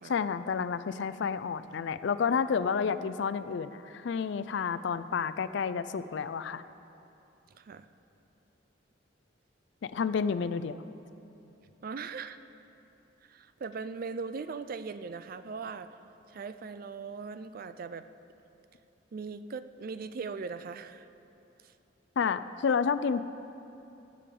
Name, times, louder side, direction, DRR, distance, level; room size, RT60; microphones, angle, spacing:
voice 1, 0.0-6.6 9.8-10.8 22.2-23.2, left 6 dB, 65° left, 13 dB, 0.4 m, -30 dB
voice 2, 7.5-7.9 11.8-12.4 13.2-15.9 16.3-18.0 19.1-21.1 21.6-21.7, right 5 dB, 50° right, 12 dB, 0.4 m, -39 dB
19.5 x 8.4 x 3.8 m, 2.8 s
head